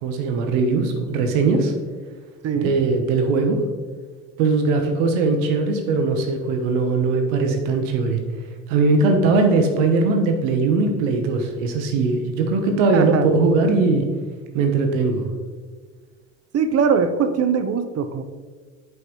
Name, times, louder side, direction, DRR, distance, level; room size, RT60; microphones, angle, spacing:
voice 1, 0.0-1.7 2.6-3.6 4.4-8.2 8.7-14.1 14.5-15.2, right 3 dB, 75° right, 4 dB, 1.0 m, -20 dB
voice 2, 2.4-2.7 12.9-13.3 16.5-18.2, right 6 dB, 40° right, 9 dB, 0.7 m, -21 dB
9.1 x 5.4 x 3.1 m, 1.5 s
hypercardioid pair, 75°, 38 cm